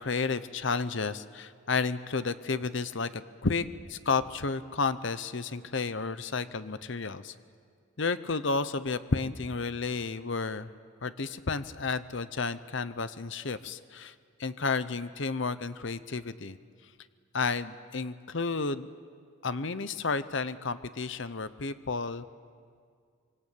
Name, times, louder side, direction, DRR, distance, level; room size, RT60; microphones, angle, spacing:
voice 1, 0.0-3.1 3.4-3.6 3.9-7.3 8.0-10.7 11.0-14.1 14.4-16.6 17.3-18.9 19.4-22.2, left 4 dB, 60° left, 13 dB, 0.9 m, -31 dB
25.5 x 25.0 x 8.6 m, 2.1 s
head